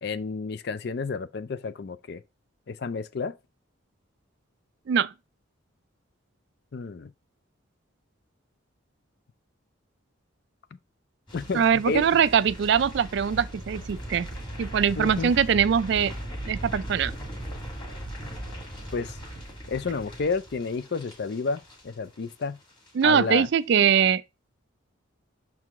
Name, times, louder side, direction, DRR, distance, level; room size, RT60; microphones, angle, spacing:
voice 1, 0.0-2.2 2.7-3.3 6.7-7.1 11.3-12.1 15.0-15.3 18.9-19.2 19.7-22.6 23.0-23.5, left 4 dB, 55° left, 0.4 m, -30 dB
sound 1, 11.3-22.4 22.7-23.0 23.4-23.5, right 1 dB, 20° left, 1.9 m, -38 dB
voice 2, 11.5-14.3 14.6-16.1 16.5-17.1 23.0-24.2, right 7 dB, 55° right, 0.3 m, -22 dB
6.0 x 4.7 x 3.6 m
head